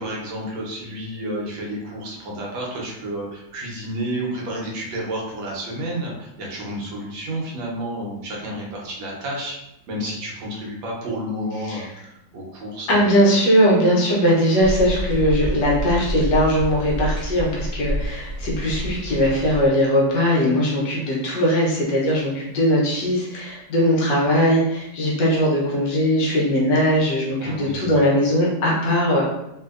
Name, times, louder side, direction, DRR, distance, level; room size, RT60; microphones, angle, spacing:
voice 1, 0.0-9.6 9.9-13.0 27.4-27.9, right 1 dB, 85° right, -3 dB, 1.6 m, -31 dB
voice 2, 12.9-29.2, equal, 70° left, -4 dB, 1.4 m, -20 dB
sound 1, 14.6-19.7, equal, 60° right, 0.6 m, -28 dB
3.6 x 2.6 x 2.4 m, 0.85 s
omnidirectional pair, 2.0 m